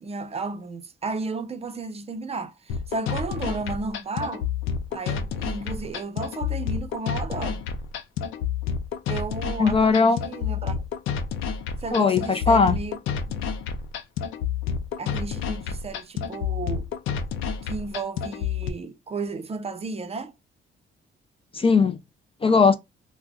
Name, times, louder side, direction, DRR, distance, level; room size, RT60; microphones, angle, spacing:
voice 1, 0.0-4.5 4.9-7.6 9.1-10.8 11.8-13.0 13.3-13.5 15.0-16.9 17.6-20.3, right 3 dB, 30° right, 0.6 m, -33 dB
sound 1, 2.7-18.7, left 7 dB, 90° left, 0.5 m, -29 dB
voice 2, 9.6-10.2 11.9-12.8 21.5-22.0 22.4-22.7, left 4 dB, 30° left, 0.4 m, -18 dB
2.3 x 2.1 x 3.5 m
cardioid pair, 90°, 20 cm